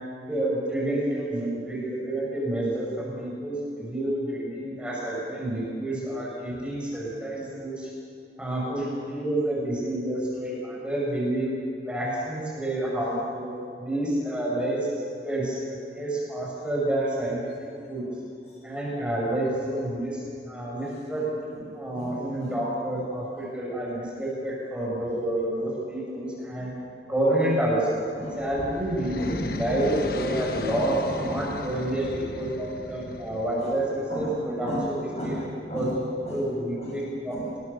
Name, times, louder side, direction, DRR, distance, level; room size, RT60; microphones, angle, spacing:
voice 1, 0.3-7.9 8.4-11.5 11.8-13.5 13.8-14.9 15.2-15.6 15.9-18.1 18.6-21.2 21.7-26.7 27.0-27.8 28.4-31.0 31.2-34.8 35.2-35.3 35.7-37.4, right 1 dB, 5° right, -5 dB, 6.4 m, -29 dB
voice 2, 20.8-22.6 25.0-25.2 27.6-27.7 28.1-28.5 29.2-31.9 33.6-33.8 34.1-37.6, equal, 35° left, -2 dB, 6.9 m, -37 dB
sound 1, 28.1-34.1, left 2 dB, 55° left, 1.2 m, -36 dB
29.5 x 20.5 x 6.9 m, 2.4 s
head